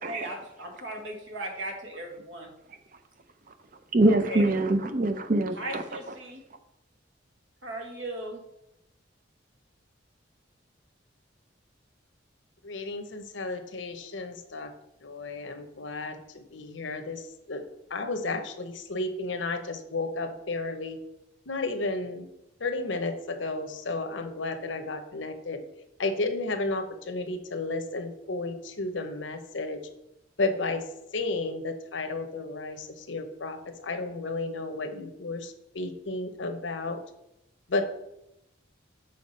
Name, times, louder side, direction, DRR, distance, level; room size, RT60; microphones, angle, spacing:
voice 1, 0.0-2.5 4.0-4.5 5.6-6.4 7.6-8.4, right 1 dB, 75° right, 1.6 m, -37 dB
voice 2, 3.9-5.8, right 2 dB, 45° right, 0.7 m, -24 dB
voice 3, 12.6-14.7 15.0-17.6 17.9-21.0 21.5-22.3 22.6-25.6 26.0-29.8 30.4-30.9 31.1-37.0 37.7-37.9, left 2 dB, 75° left, 0.8 m, -32 dB
6.6 x 4.6 x 5.4 m
head